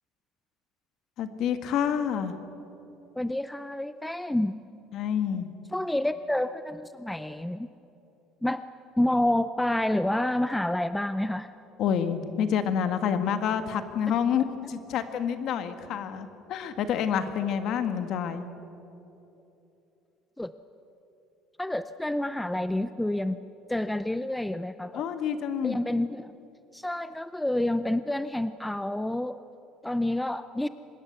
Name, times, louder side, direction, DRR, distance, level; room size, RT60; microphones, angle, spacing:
voice 1, 1.2-2.3 4.9-5.5 11.8-18.5 24.9-25.8, left 8 dB, 50° left, 9 dB, 1.7 m, -28 dB
voice 2, 3.2-4.5 5.7-7.7 8.4-8.6 9.0-11.5 20.4-20.5 21.6-23.4 23.7-25.0 25.6-26.3 26.7-29.4 29.8-30.7, left 1 dB, 5° left, 12 dB, 0.4 m, -28 dB
25.0 x 20.5 x 8.1 m, 3.0 s
cardioid pair, 165°, 0 cm